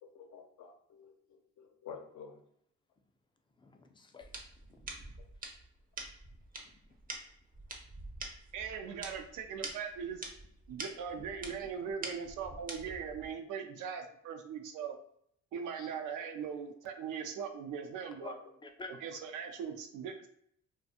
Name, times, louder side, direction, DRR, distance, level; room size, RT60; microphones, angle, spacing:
voice 1, 0.0-2.4 15.5-15.9, left 6 dB, 70° left, 4 dB, 0.5 m, -51 dB
voice 2, 3.6-4.3 4.7-5.1 6.6-6.7 18.2-18.3 18.6-19.2, left 3 dB, 15° left, 4 dB, 0.3 m, -49 dB
sound 1, 4.2-13.3, right 2 dB, 30° right, 0.5 m, -46 dB
voice 3, 8.5-10.2 10.7-15.0 15.5-18.4 19.0-20.3, right 7 dB, 80° right, 6 dB, 0.5 m, -40 dB
2.4 x 2.3 x 2.6 m, 0.69 s
cardioid pair, 90°, 30 cm